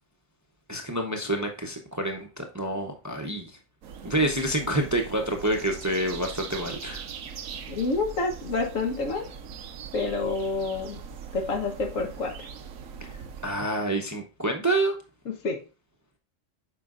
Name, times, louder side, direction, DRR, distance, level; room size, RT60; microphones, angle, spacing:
voice 1, 0.7-3.5 4.0-7.0 13.4-14.9, right 1 dB, 15° right, 3 dB, 0.6 m, -28 dB
sound 1, 3.8-13.5, right 6 dB, 85° right, 1.1 m, -41 dB
voice 2, 7.7-9.3 9.9-11.0 11.3-12.5 15.3-15.6, left 3 dB, 75° left, 4 dB, 1.5 m, -28 dB
7.6 x 5.5 x 2.5 m, 0.32 s
omnidirectional pair, 1.3 m